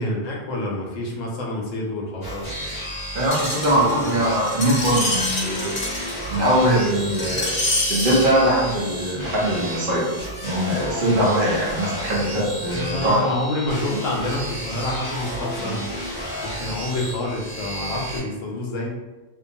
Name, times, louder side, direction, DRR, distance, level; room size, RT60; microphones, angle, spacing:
voice 1, 0.0-2.5 4.0-4.2 12.7-15.8 16.4-18.9, left 1 dB, 80° left, -1 dB, 1.0 m, -28 dB
sound 1, 2.2-18.2, equal, 15° left, 1.2 m, -32 dB
voice 2, 3.1-5.8 6.3-7.6 7.9-10.1 10.4-13.2, right 1 dB, 50° right, -5 dB, 0.7 m, -21 dB
Screech, 3.3-8.3 9.0-9.1, left 2 dB, 50° left, 1.0 m, -27 dB
2.6 x 2.2 x 2.6 m, 1.1 s
omnidirectional pair, 1.3 m